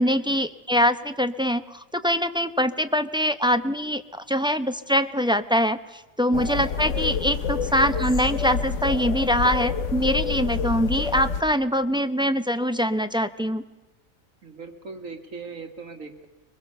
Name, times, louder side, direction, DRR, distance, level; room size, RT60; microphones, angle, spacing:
voice 1, 0.0-13.6, equal, 5° right, 10 dB, 0.7 m, -23 dB
sound 1, 6.3-11.4, left 5 dB, 65° left, 1.3 m, -27 dB
voice 2, 6.3-6.8 14.4-16.3, right 4 dB, 70° right, 6 dB, 2.4 m, -39 dB
23.5 x 21.0 x 6.9 m, 1.1 s
omnidirectional pair, 1.4 m